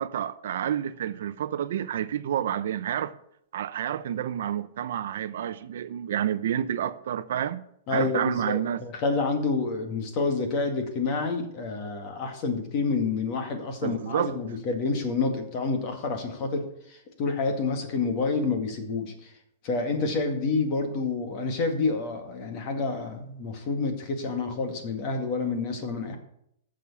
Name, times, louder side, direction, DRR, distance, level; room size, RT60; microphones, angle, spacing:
voice 1, 0.0-3.1 3.5-7.6 7.9-8.8 13.8-14.3, right 10 dB, 60° right, 0.7 m, -29 dB
voice 2, 7.9-19.3 19.6-26.2, left 4 dB, 30° left, 2.0 m, -28 dB
14.0 x 6.4 x 7.1 m
supercardioid pair, 170°, 0 cm